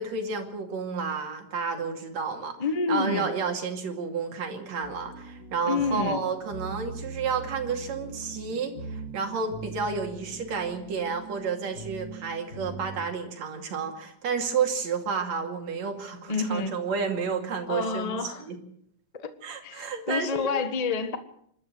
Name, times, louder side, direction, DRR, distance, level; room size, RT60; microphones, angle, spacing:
voice 1, 0.0-2.6 2.9-18.6 19.4-20.5, right 5 dB, 65° right, 4 dB, 3.7 m, -31 dB
voice 2, 2.6-3.3 5.6-6.2 16.3-16.7 17.7-18.5 19.1-19.3 19.6-21.2, left 4 dB, 50° left, 10 dB, 0.4 m, -28 dB
sound 1, 4.8-13.0, right 3 dB, 30° left, 2.4 m, -41 dB
26.5 x 12.5 x 7.8 m, 0.67 s
omnidirectional pair, 3.4 m